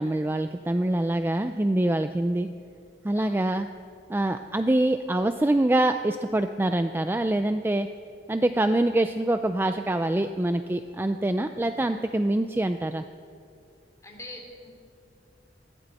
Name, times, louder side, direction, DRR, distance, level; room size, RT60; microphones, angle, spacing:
voice 1, 0.0-2.5 3.0-3.7 4.1-7.9 8.3-13.0, right 1 dB, 10° right, 9 dB, 0.4 m, -25 dB
voice 2, 14.0-14.7, left 1 dB, 20° left, 0 dB, 2.8 m, -43 dB
20.0 x 15.5 x 4.2 m, 2.4 s
head